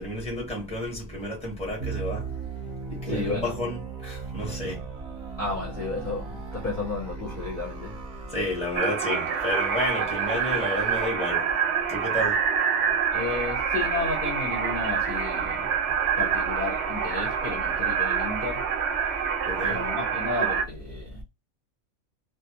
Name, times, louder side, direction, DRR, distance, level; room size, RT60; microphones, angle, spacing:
voice 1, 0.0-2.3 2.9-4.8 8.3-11.5 11.9-12.4 19.4-19.8, left 1 dB, 5° left, 0.9 m, -31 dB
sound 1, 1.8-11.1, right 5 dB, 40° right, 0.7 m, -39 dB
voice 2, 3.0-3.5 4.5-4.7 5.4-8.0 9.9-10.1 13.1-15.7 16.2-18.6 19.6-21.2, left 3 dB, 45° left, 0.8 m, -32 dB
sound 2, 8.8-20.6, right 7 dB, 65° right, 0.8 m, -26 dB
2.5 x 2.5 x 2.8 m
omnidirectional pair, 1.4 m